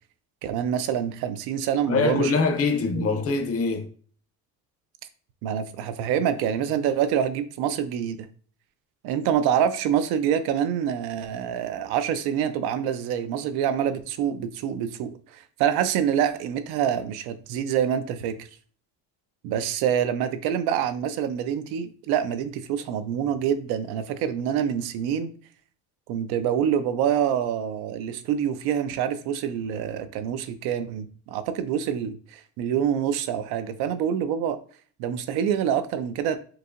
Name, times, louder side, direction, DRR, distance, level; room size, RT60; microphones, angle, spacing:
voice 1, 0.4-2.3 3.0-3.1 5.4-8.3 9.0-18.4 19.4-25.3 26.1-34.6 35.0-36.4, right 9 dB, 80° right, 0.6 m, -26 dB
voice 2, 1.9-3.9, left 4 dB, 40° left, 0.7 m, -24 dB
4.7 x 2.7 x 2.5 m
cardioid pair, 140°, 38 cm